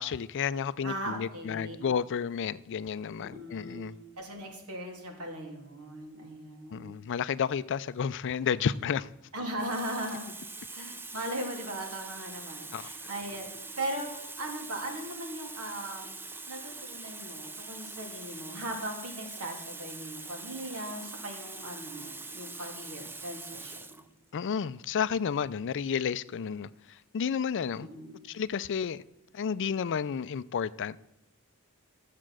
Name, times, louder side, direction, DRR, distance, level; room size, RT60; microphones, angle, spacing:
voice 1, 0.0-3.9 6.7-9.1 12.7-12.9 24.3-27.9 28.3-29.0 29.3-31.0, left 7 dB, 55° left, 0.4 m, -31 dB
voice 2, 0.8-1.8 3.2-7.0 9.3-10.3 10.7-13.5 13.8-16.2 16.5-24.0 27.8-28.2, right 1 dB, 75° right, 3.0 m, -39 dB
Water tap faucet, 8.8-9.0 9.6-24.1 25.0-25.1, right 3 dB, 10° right, 0.5 m, -43 dB
13.5 x 7.5 x 6.2 m
head